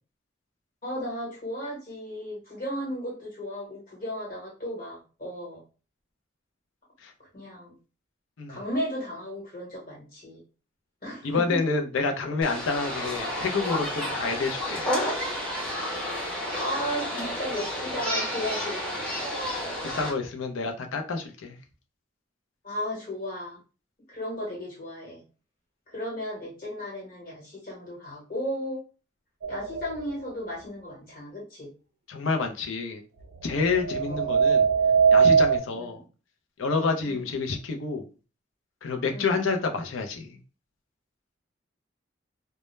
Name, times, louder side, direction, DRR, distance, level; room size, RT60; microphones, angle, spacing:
voice 1, 0.8-5.6 7.2-7.7 8.5-10.4 11.0-11.8 12.2-12.3 16.5-19.1 22.6-23.6 24.1-25.2 25.9-28.8 29.5-31.7 34.1-34.3 35.7-36.1 37.0-37.3 39.1-39.4, equal, 45° left, 1.1 m, -35 dB
voice 2, 11.2-14.9 19.8-21.6 32.1-33.0 33.4-34.7 35.1-36.0 36.6-38.1 38.8-40.4, left 4 dB, 90° left, 0.5 m, -28 dB
sound 1, 12.4-20.1, equal, 5° left, 0.6 m, -31 dB
sound 2, 29.4-30.1 33.4-35.6, right 6 dB, 75° right, 0.4 m, -21 dB
2.1 x 2.1 x 3.0 m
head